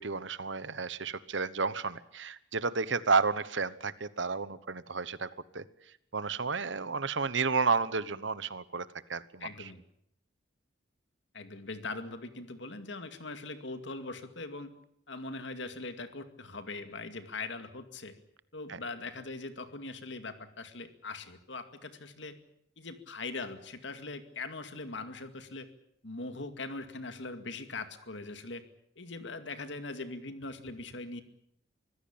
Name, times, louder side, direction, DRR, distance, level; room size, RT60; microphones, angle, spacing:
voice 1, 0.0-5.3 5.5-5.6 6.1-9.5 18.7-18.8, right 4 dB, 70° right, 16 dB, 1.1 m, -31 dB
voice 2, 9.4-9.8 11.3-14.7 15.1-18.1 18.5-22.4 22.8-25.7 26.0-28.6 29.0-31.2, left 3 dB, 65° left, 9 dB, 2.2 m, -41 dB
24.5 x 16.0 x 8.8 m, 0.74 s
head